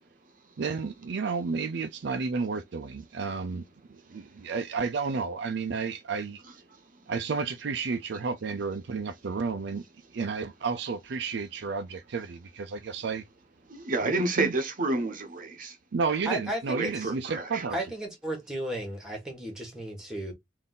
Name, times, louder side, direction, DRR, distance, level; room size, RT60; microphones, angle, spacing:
voice 1, 0.6-3.6 3.9-6.4 7.1-9.8 10.1-13.2 14.0-14.5 15.9-17.8, right 4 dB, 65° right, 0.4 m, -31 dB
voice 2, 13.7-15.8 16.7-17.7, right 2 dB, 45° right, 0.8 m, -30 dB
voice 3, 16.2-17.1 17.7-20.3, right 1 dB, 5° right, 1.4 m, -34 dB
3.6 x 2.6 x 3.8 m
head